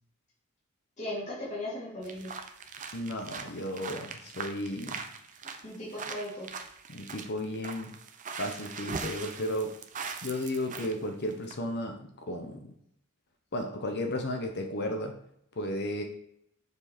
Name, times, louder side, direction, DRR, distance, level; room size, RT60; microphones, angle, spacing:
voice 1, 1.0-2.3 5.6-6.5, left 1 dB, 35° left, -8 dB, 2.6 m, -37 dB
sound 1, 2.0-10.9 11.3-11.5, right 5 dB, 35° right, 0.7 m, -41 dB
voice 2, 2.9-5.0 6.9-7.9 8.4-9.7 10.2-12.6 13.5-15.1 15.6-16.0, left 1 dB, 55° left, 4 dB, 1.0 m, -34 dB
6.6 x 4.9 x 5.2 m, 0.74 s
head